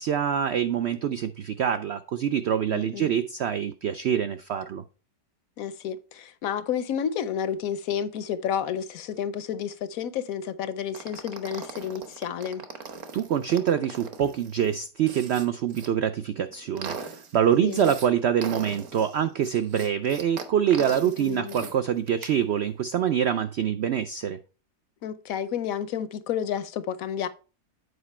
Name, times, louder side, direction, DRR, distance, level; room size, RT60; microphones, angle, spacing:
voice 1, 0.0-4.8 13.1-24.4, right 9 dB, 90° right, 0.5 m, -25 dB
voice 2, 2.7-3.1 5.6-12.7 17.6-17.9 21.0-21.7 25.0-27.3, left 8 dB, 70° left, 0.9 m, -31 dB
sound 1, 10.9-15.9 16.4-18.1 18.4-21.7 22.1-22.4, right 5 dB, 55° right, 1.3 m, -40 dB
8.1 x 4.9 x 4.2 m
omnidirectional pair, 1.7 m